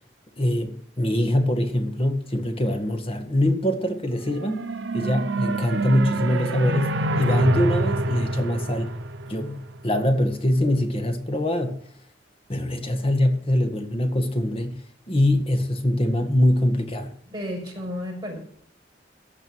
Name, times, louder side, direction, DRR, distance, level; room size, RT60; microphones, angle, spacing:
voice 1, 0.4-4.7 4.9-8.9 9.3-9.6 9.8-11.7 12.5-14.8 15.1-17.1, left 1 dB, 30° left, 1.8 m, -23 dB
sound 1, 4.2-9.8, right 2 dB, 90° right, 0.9 m, -26 dB
voice 2, 17.3-18.4, left 1 dB, 25° right, 6.3 m, -32 dB
15.5 x 5.3 x 9.2 m
head